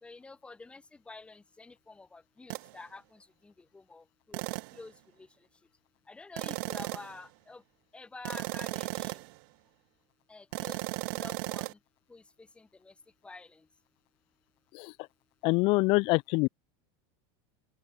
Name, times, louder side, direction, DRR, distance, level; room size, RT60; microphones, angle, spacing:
voice 1, 0.0-4.4 4.7-5.3 6.1-7.6 7.9-9.2 10.3-10.8 11.1-11.8 12.1-12.2 12.6-12.9 13.2-13.6, left 3 dB, 5° left, 3.9 m, -49 dB
sound 1, 2.5-2.7 4.3-4.8 6.4-7.2 8.2-9.4 10.5-11.7, right 28 dB, 50° right, 0.4 m, -36 dB
voice 2, 15.4-16.5, left 26 dB, 40° left, 0.6 m, -25 dB
open air
supercardioid pair, 175°, 14 cm